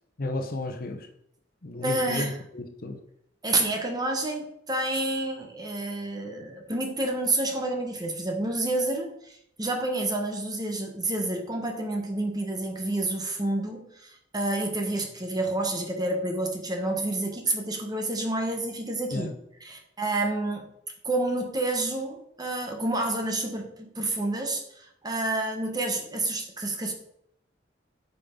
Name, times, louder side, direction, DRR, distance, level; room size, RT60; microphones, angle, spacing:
voice 1, 0.2-1.1 1.6-3.0 19.1-19.3, left 2 dB, 55° left, 6 dB, 1.0 m, -33 dB
voice 2, 1.8-2.4 3.4-19.3 19.6-20.7 21.0-26.9, right 2 dB, 20° right, 3 dB, 1.2 m, -29 dB
8.8 x 5.5 x 3.8 m, 0.71 s
head